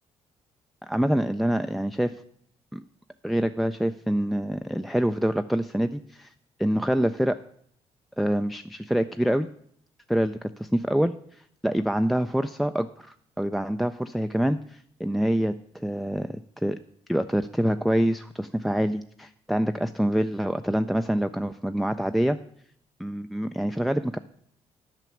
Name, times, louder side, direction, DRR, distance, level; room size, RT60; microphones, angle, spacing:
voice 1, 0.9-2.2 2.7-2.8 3.2-6.3 6.6-7.4 8.2-9.5 10.1-11.1 11.6-16.8 17.1-22.4 23.0-24.2, equal, ahead, 9 dB, 0.3 m, -26 dB
9.1 x 6.0 x 7.0 m, 0.65 s
cardioid pair, 100°, 12 cm